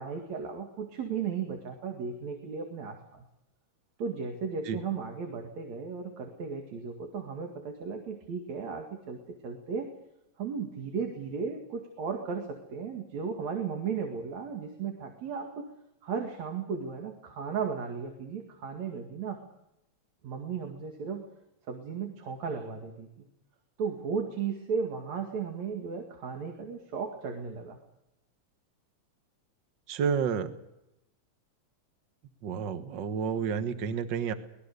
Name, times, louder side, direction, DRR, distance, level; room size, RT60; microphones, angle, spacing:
voice 1, 0.0-3.2 4.0-9.9 10.4-15.7 16.0-19.4 20.2-21.3 21.7-23.3 23.8-27.8, right 6 dB, 70° right, 3 dB, 3.4 m, -35 dB
voice 2, 29.9-30.5 32.4-34.3, right 7 dB, 50° right, 9 dB, 1.7 m, -30 dB
24.5 x 19.5 x 6.7 m, 0.88 s
omnidirectional pair, 3.3 m